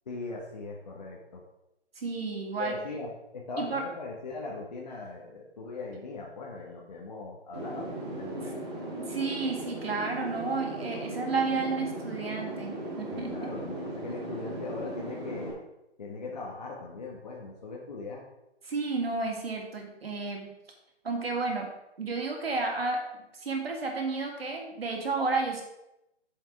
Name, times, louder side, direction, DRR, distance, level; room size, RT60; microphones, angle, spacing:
voice 1, 0.1-1.4 2.6-7.9 8.2-8.6 13.1-15.6 16.0-18.2, left 3 dB, 40° left, -2 dB, 1.3 m, -40 dB
voice 2, 2.0-2.8 3.6-3.9 8.3-8.5 9.0-13.6 18.6-20.5 21.0-21.7 22.0-23.0 23.3-25.6, right 4 dB, 60° right, 2 dB, 2.5 m, -32 dB
sound 1, 7.5-15.5, right 1 dB, 25° right, 1.9 m, -37 dB
8.4 x 6.4 x 4.8 m, 0.89 s
hypercardioid pair, 170°, 33 cm